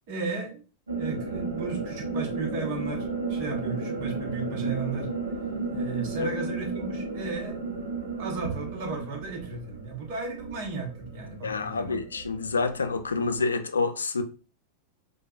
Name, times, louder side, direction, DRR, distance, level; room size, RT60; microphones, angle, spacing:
voice 1, 0.1-0.6 0.9-5.1 5.7-7.6 8.2-12.0, right 4 dB, 45° right, 1.0 m, -35 dB
sound 1, 0.9-13.5, right 3 dB, 75° right, 0.7 m, -34 dB
voice 2, 11.4-14.2, left 4 dB, 75° left, 0.3 m, -28 dB
4.5 x 2.2 x 2.4 m
figure-of-eight pair, 90°, 0 cm